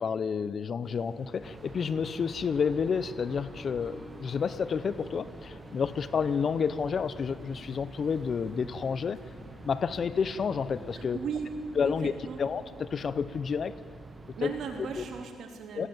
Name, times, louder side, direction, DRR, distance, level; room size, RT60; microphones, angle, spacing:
voice 1, 0.0-9.2 9.6-11.2 11.8-12.1 12.4-13.8 14.4-14.5 15.0-15.1 15.8-15.9, left 6 dB, 50° left, 16 dB, 0.7 m, -30 dB
sound 1, 0.8-11.1, left 1 dB, 10° left, 3.8 m, -50 dB
sound 2, 1.4-15.3, right 3 dB, 25° right, 1.7 m, -48 dB
voice 2, 10.9-11.5 11.8-12.4 14.3-15.9, right 6 dB, 65° right, 3 dB, 3.4 m, -37 dB
19.5 x 16.0 x 9.1 m, 2.1 s
cardioid pair, 90°, 0 cm